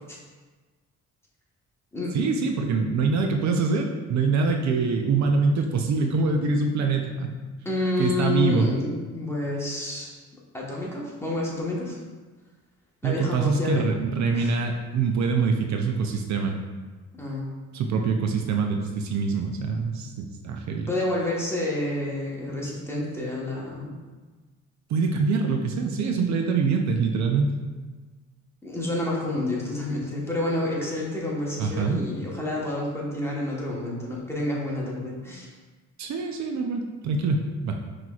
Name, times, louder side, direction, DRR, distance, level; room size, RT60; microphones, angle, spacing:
voice 1, 2.1-7.3 8.0-8.7 13.0-16.6 17.7-20.9 24.9-27.5 31.6-32.0 36.0-37.8, right 4 dB, 65° right, 3 dB, 0.5 m, -24 dB
voice 2, 7.6-10.1 10.5-12.0 13.0-13.9 14.3-14.5 17.1-17.5 20.9-24.0 28.6-35.5, left 2 dB, 10° left, -5 dB, 1.1 m, -29 dB
5.7 x 3.1 x 2.3 m, 1.3 s
cardioid pair, 90°, 30 cm